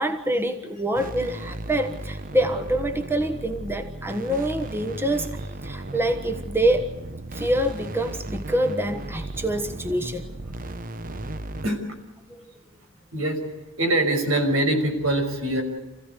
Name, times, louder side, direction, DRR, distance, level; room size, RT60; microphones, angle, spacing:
voice 1, 0.0-6.9 7.3-10.3 12.3-12.4, right 1 dB, 10° right, 7 dB, 1.3 m, -26 dB
sound 1, 1.0-11.7, right 2 dB, 40° right, 1.0 m, -35 dB
voice 2, 13.8-15.6, right 1 dB, 75° right, 5 dB, 6.1 m, -23 dB
29.0 x 16.0 x 8.3 m, 1.1 s
head